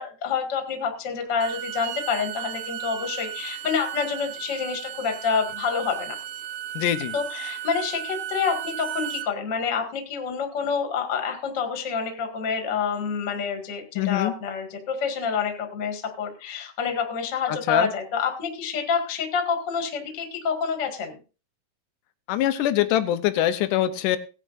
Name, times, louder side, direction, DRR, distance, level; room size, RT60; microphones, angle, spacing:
voice 1, 0.0-6.2 7.1-21.2, left 6 dB, 40° left, 4 dB, 1.7 m, -28 dB
Bowed string instrument, 1.2-9.3, right 11 dB, 75° right, 2.0 m, -35 dB
voice 2, 6.8-7.1 14.0-14.3 17.5-17.9 22.3-24.2, left 12 dB, 80° left, 11 dB, 1.9 m, -23 dB
18.0 x 9.9 x 2.5 m, 0.33 s
omnidirectional pair, 4.6 m